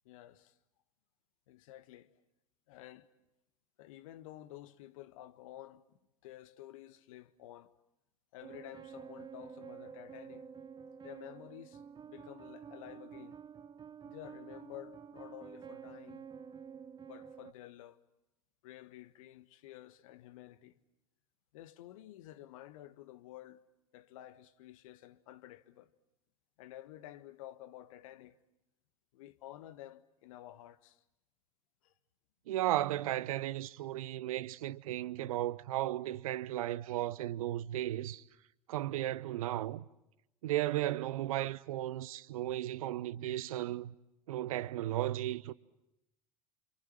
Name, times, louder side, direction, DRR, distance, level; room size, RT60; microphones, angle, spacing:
voice 1, 0.0-0.6 1.5-2.1 2.7-3.1 3.8-6.0 6.2-7.7 8.3-10.5 11.0-11.8 12.1-13.4 14.0-16.3 17.0-18.0 18.6-20.8 21.5-23.6 23.9-25.9 26.6-28.3 29.1-31.0 31.8-31.9, left 14 dB, 60° left, 1.5 m, -51 dB
sound 1, 8.4-17.5, right 7 dB, 20° right, 1.1 m, -50 dB
voice 2, 32.5-38.2 38.7-39.8 40.4-43.9 44.3-45.5, right 14 dB, 65° right, 1.0 m, -35 dB
28.0 x 28.0 x 7.4 m
figure-of-eight pair, 80°, 19 cm